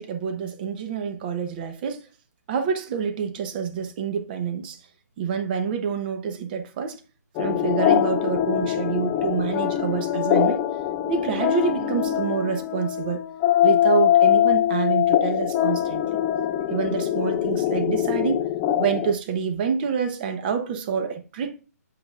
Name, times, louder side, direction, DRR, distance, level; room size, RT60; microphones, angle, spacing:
voice 1, 0.0-2.1 2.5-4.8 5.2-7.0 7.4-10.6 11.1-13.2 13.6-16.0 16.7-18.5 18.8-21.6, right 6 dB, 35° right, 0.9 m, -27 dB
sound 1, 7.4-19.1, left 11 dB, 20° left, 0.4 m, -23 dB
7.7 x 5.2 x 2.5 m
hypercardioid pair, 150°, 9 cm